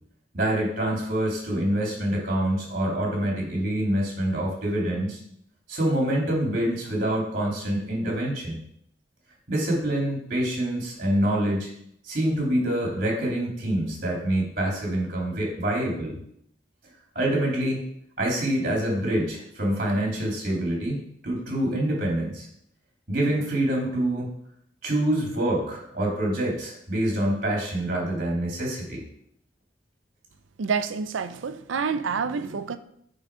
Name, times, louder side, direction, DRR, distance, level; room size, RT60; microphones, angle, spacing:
voice 1, 0.3-5.2 5.7-8.6 9.5-11.7 12.0-16.2 17.1-17.8 18.2-22.5 23.1-24.3 24.8-29.0, right 1 dB, 45° right, -2 dB, 2.5 m, -26 dB
voice 2, 30.6-32.8, right 5 dB, 85° right, 11 dB, 0.5 m, -28 dB
9.1 x 4.0 x 4.9 m, 0.70 s
head